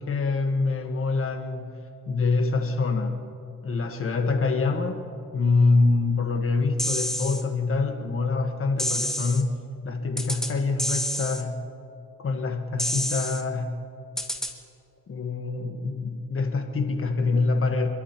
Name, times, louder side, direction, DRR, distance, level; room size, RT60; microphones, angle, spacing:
voice 1, 0.1-1.7 2.1-3.2 3.6-5.0 5.3-9.6 9.8-11.6 12.2-13.7 15.1-17.9, left 3 dB, 45° left, 5 dB, 1.4 m, -25 dB
sound 1, 6.8-7.4 8.8-9.4 10.2-10.5 10.8-11.4 12.8-13.4 14.2-14.5, equal, ahead, 1.9 m, -28 dB
28.5 x 12.5 x 3.0 m, 2.5 s
cardioid pair, 90°, 30 cm